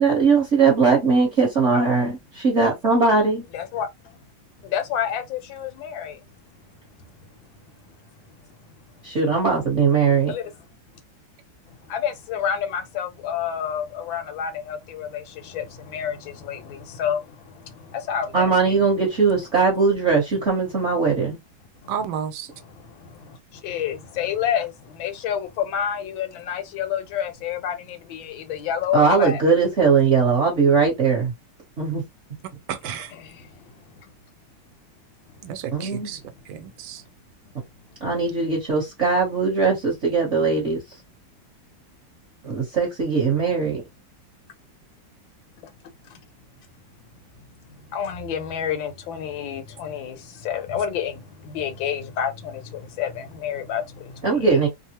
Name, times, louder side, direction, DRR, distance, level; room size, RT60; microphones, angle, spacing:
voice 1, 0.0-3.4 9.0-10.3 18.3-21.4 28.9-31.3 31.8-32.0 35.7-36.1 38.0-40.8 42.4-43.8 54.2-54.7, right 5 dB, 45° right, 1.2 m, -20 dB
voice 2, 3.5-4.2 4.6-6.2 10.3-10.5 11.8-18.8 21.8-21.9 22.7-29.4 33.1-34.0 45.6-45.7 46.1-46.2 47.9-54.6, left 8 dB, 85° left, 1.5 m, -29 dB
voice 3, 21.9-22.5 32.7-33.1 35.4-36.2 36.5-37.0, right 8 dB, 90° right, 1.4 m, -31 dB
3.4 x 2.0 x 2.8 m
omnidirectional pair, 2.1 m